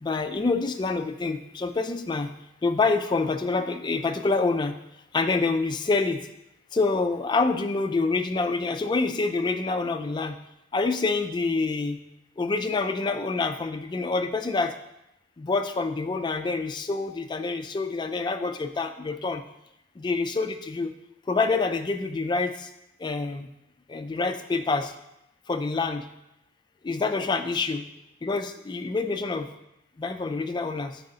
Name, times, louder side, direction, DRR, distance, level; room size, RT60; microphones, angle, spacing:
voice 1, 0.0-2.3 2.6-4.8 5.1-6.3 6.7-10.4 10.7-12.0 12.4-14.7 15.4-19.4 20.0-20.9 21.3-22.7 23.0-23.5 23.9-24.9 25.5-26.1 26.8-27.9 28.2-29.5 30.0-31.0, left 3 dB, 25° left, 7 dB, 0.3 m, -27 dB
4.7 x 3.8 x 5.4 m, 0.86 s
head